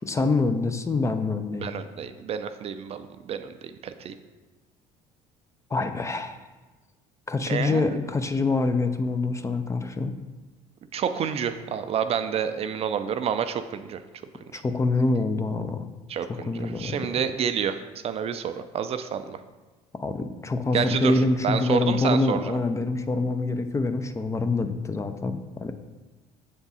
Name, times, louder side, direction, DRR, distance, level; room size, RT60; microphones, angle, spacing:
voice 1, 0.1-1.7 5.7-6.4 7.3-10.2 14.5-15.8 16.5-17.2 19.9-25.7, left 3 dB, 20° left, 8 dB, 0.5 m, -25 dB
voice 2, 1.6-4.1 7.5-8.0 10.9-14.0 16.1-17.8 18.0-19.4 20.7-22.6, right 8 dB, 45° right, 10 dB, 0.4 m, -29 dB
7.0 x 3.6 x 4.1 m, 1.2 s
supercardioid pair, 80°, 15 cm